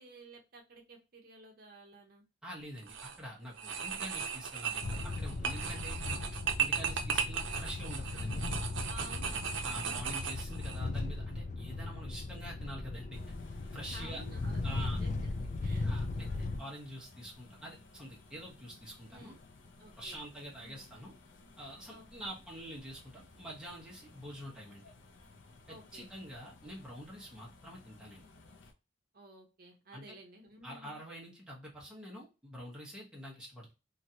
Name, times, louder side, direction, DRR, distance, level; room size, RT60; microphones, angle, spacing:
voice 1, 0.0-2.2 6.4-7.0 8.9-10.2 13.9-16.7 19.1-19.4 19.8-20.2 20.5-20.9 21.9-22.3 25.7-26.1 29.1-31.0, right 2 dB, 55° right, 1 dB, 0.8 m, -54 dB
voice 2, 2.4-6.2 6.6-8.4 9.6-13.3 13.7-14.2 14.6-15.0 15.8-16.3 16.6-19.3 20.0-21.1 21.6-24.9 25.7-28.2 29.9-30.1 30.6-33.7, equal, 5° right, -5 dB, 1.0 m, -46 dB
sound 1, 2.8-3.2 3.6-10.8, right 7 dB, 85° right, 0.5 m, -36 dB
sound 2, 4.8-16.6, left 2 dB, 40° left, 0.3 m, -37 dB
sound 3, 13.1-28.7, left 3 dB, 85° left, 0.6 m, -57 dB
3.0 x 2.5 x 2.8 m, 0.28 s
head